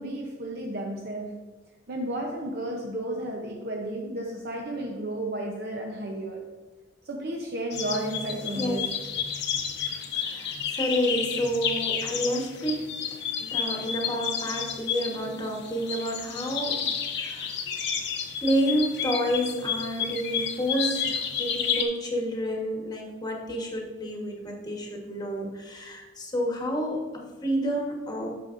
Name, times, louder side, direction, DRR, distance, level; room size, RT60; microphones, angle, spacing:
voice 1, 0.0-1.5 1.9-6.5 7.0-8.9, right 1 dB, 55° right, 0 dB, 0.7 m, -33 dB
sound 1, 7.7-21.8, left 7 dB, 60° left, 0.8 m, -31 dB
voice 2, 10.1-12.9 13.4-16.8 17.1-17.5 18.4-28.3, equal, 20° left, 0 dB, 1.2 m, -29 dB
9.1 x 6.7 x 2.5 m, 1.3 s
head